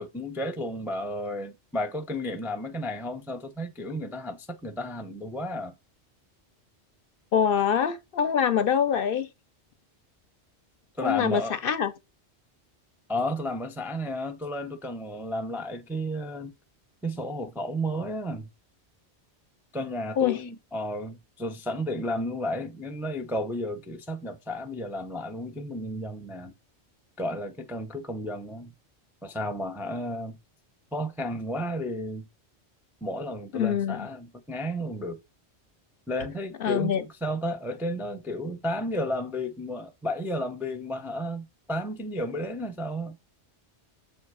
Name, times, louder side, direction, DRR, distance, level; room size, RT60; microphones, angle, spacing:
voice 1, 0.0-5.7 11.0-11.6 13.1-16.5 17.0-18.5 19.7-26.5 27.2-28.7 29.2-30.4 30.9-32.3 33.0-35.2 36.1-43.2, equal, 5° right, 0.4 m, -32 dB
voice 2, 7.3-9.3 11.0-11.9 20.2-20.4 33.5-34.1 36.6-37.0, left 8 dB, 60° left, 0.7 m, -24 dB
6.9 x 3.0 x 4.7 m
omnidirectional pair, 1.1 m